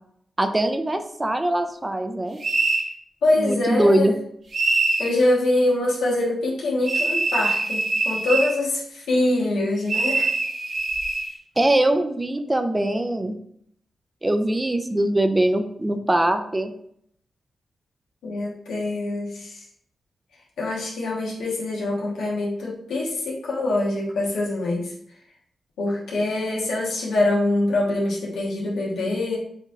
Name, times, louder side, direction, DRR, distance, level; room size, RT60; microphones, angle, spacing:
voice 1, 0.4-2.4 3.3-4.2 11.6-13.4 14.2-16.7, right 1 dB, 25° right, 7 dB, 0.5 m, -22 dB
sound 1, 2.4-2.9 4.5-5.1 6.9-8.6 9.9-11.3, right 3 dB, 75° right, 1.2 m, -23 dB
voice 2, 3.2-4.1 5.0-10.3 18.2-19.5 20.6-24.9 25.8-29.4, left 2 dB, 90° left, -4 dB, 1.2 m, -24 dB
7.0 x 2.7 x 2.4 m, 0.68 s
cardioid pair, 50°, 0 cm